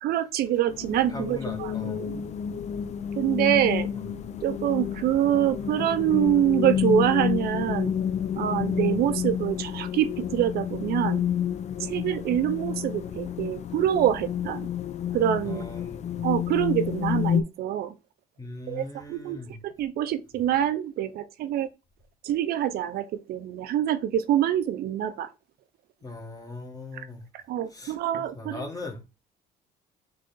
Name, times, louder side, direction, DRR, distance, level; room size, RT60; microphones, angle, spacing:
voice 1, 0.0-1.7 2.0-2.2 3.2-3.9 4.4-7.9 8.4-11.2 11.8-14.7 15.1-15.6 16.2-17.9 18.7-19.4 19.6-21.7 22.2-25.3 26.9-27.0 27.5-28.7, right 11 dB, 65° right, 0.5 m, -25 dB
sound 1, 0.7-17.4, left 8 dB, 45° left, 0.4 m, -30 dB
voice 2, 1.1-2.1 15.4-16.2 18.4-19.6 26.0-27.2 27.7-29.0, left 2 dB, 20° left, 1.2 m, -39 dB
3.9 x 3.2 x 3.8 m
cardioid pair, 110°, 17 cm